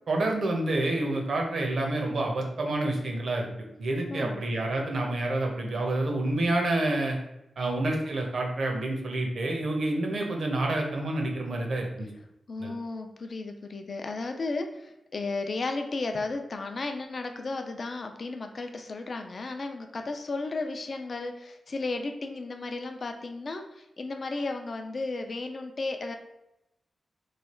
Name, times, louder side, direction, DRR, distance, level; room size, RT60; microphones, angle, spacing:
voice 1, 0.1-3.5 3.8-7.2 7.6-12.1 12.6-12.7, right 2 dB, 60° right, 1 dB, 0.8 m, -28 dB
voice 2, 4.1-4.5 7.6-7.8 12.5-26.2, left 3 dB, 40° left, 5 dB, 0.4 m, -34 dB
3.2 x 2.3 x 4.2 m, 0.88 s
wide cardioid pair, 170°, 0 cm